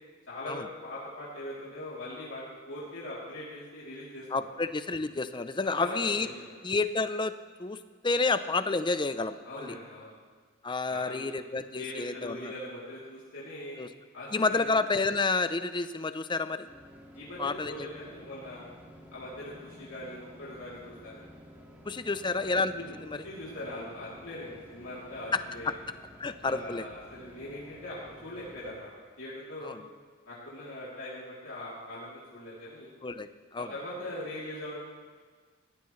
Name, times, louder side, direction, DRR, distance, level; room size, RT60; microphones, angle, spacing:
voice 1, 0.3-4.5 5.7-6.5 9.4-10.1 10.9-11.3 11.8-13.8 14.1-14.6 17.1-18.7 19.1-21.2 22.0-22.2 22.7-25.7 26.4-28.9 29.2-29.8 30.2-32.9 33.6-34.8, left 1 dB, 75° left, -8 dB, 3.1 m, -41 dB
voice 2, 4.3-6.3 6.6-7.3 7.6-7.8 8.0-9.8 10.6-12.5 13.8-13.9 14.3-16.7 17.4-17.9 21.9-23.2 25.3-25.4 26.2-26.9 29.6-29.8 33.0-33.7, left 3 dB, 25° left, 11 dB, 0.6 m, -30 dB
sound 1, 16.7-28.7, equal, 10° right, 1.9 m, -52 dB
19.5 x 16.0 x 3.2 m, 1.5 s
head